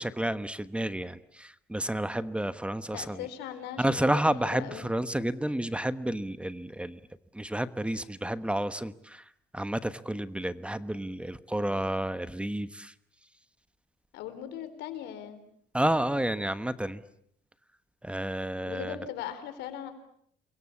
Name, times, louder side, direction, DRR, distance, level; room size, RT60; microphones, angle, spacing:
voice 1, 0.0-3.3 3.8-7.0 7.3-12.9 15.7-17.0 18.0-19.0, right 1 dB, 5° right, 13 dB, 1.1 m, -30 dB
voice 2, 2.9-4.9 14.1-15.4 18.6-19.9, left 10 dB, 90° left, 10 dB, 4.3 m, -39 dB
29.0 x 23.5 x 8.5 m, 0.70 s
cardioid pair, 110°, 17 cm